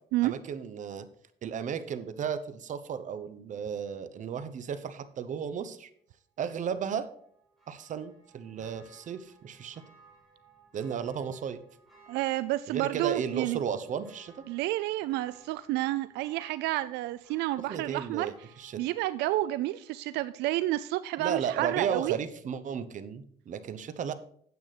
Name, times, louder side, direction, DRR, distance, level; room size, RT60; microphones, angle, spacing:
voice 1, 0.2-1.1 1.4-5.9 6.4-7.1 7.7-9.8 10.7-11.6 12.7-14.4 17.7-18.8 21.2-24.1, right 7 dB, 50° right, 12 dB, 0.9 m, -34 dB
Church bell, 6.5-20.1 20.5-20.6, right 4 dB, ahead, 4.8 m, -61 dB
voice 2, 12.1-13.6 14.5-18.3 18.8-22.2, right 16 dB, 90° right, 15 dB, 0.5 m, -30 dB
9.4 x 8.2 x 4.1 m, 0.63 s
cardioid pair, 110°, 17 cm